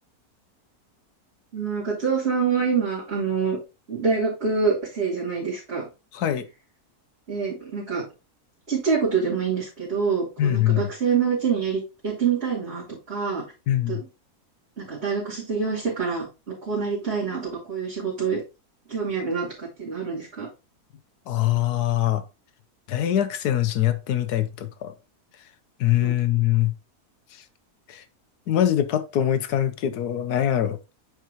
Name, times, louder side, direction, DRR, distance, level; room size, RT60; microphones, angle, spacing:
voice 1, 1.5-3.6 3.9-5.9 7.3-8.0 8.7-13.4 13.9-14.0 14.8-18.4 18.9-20.5 26.0-26.2, right 5 dB, 40° right, 3.4 m, -26 dB
voice 2, 6.1-6.5 10.4-10.9 13.7-14.0 21.3-22.2 22.9-24.9 25.8-26.7 27.3-27.4 27.9-28.0 28.5-30.8, left 12 dB, 80° left, 1.3 m, -23 dB
9.4 x 4.7 x 2.9 m
omnidirectional pair, 1.6 m